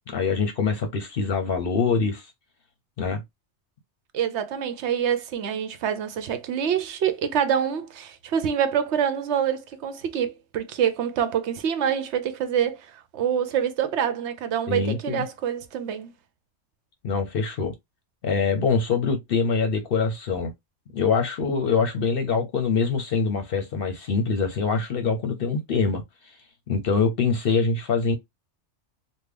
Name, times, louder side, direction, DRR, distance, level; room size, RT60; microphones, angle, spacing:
voice 1, 0.1-2.3 3.0-3.2 14.7-15.2 17.0-17.7 18.2-20.5 20.9-26.3 26.7-28.1, left 5 dB, 60° left, 0.7 m, -24 dB
voice 2, 4.1-16.1, right 8 dB, 75° right, 0.9 m, -26 dB
3.6 x 2.2 x 3.2 m
omnidirectional pair, 1.2 m